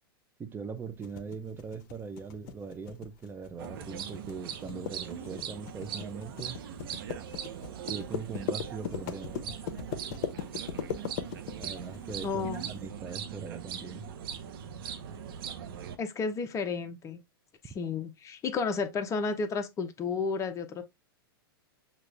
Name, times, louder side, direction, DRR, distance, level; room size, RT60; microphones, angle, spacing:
voice 1, 0.4-6.6 7.9-9.5 11.6-14.1, right 5 dB, 15° right, 0.6 m, -41 dB
sound 1, 1.0-12.6, left 8 dB, 55° left, 0.8 m, -38 dB
sound 2, 3.6-16.0, right 8 dB, 65° right, 0.8 m, -40 dB
voice 2, 12.2-12.7 16.0-17.2 17.6-20.8, left 4 dB, 25° left, 0.8 m, -32 dB
6.4 x 2.4 x 3.3 m
hypercardioid pair, 120°, 13 cm